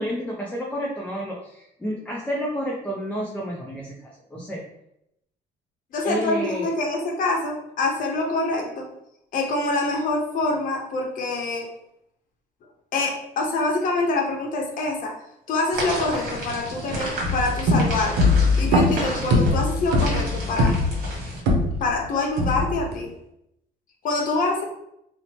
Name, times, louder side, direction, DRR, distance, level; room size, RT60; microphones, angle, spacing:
voice 1, 0.0-4.6 6.0-6.7, equal, 10° left, -3 dB, 0.4 m, -30 dB
voice 2, 5.9-8.9 9.3-11.7 12.9-15.1 15.5-20.7 21.8-23.1 24.0-24.6, left 2 dB, 50° left, 0 dB, 0.7 m, -25 dB
sound 1, 15.7-21.4, right 1 dB, 60° right, 1.1 m, -31 dB
sound 2, 17.2-22.0 22.4-22.9, left 2 dB, 85° right, 0.6 m, -21 dB
2.7 x 2.1 x 2.9 m, 0.79 s
cardioid pair, 110°, 17 cm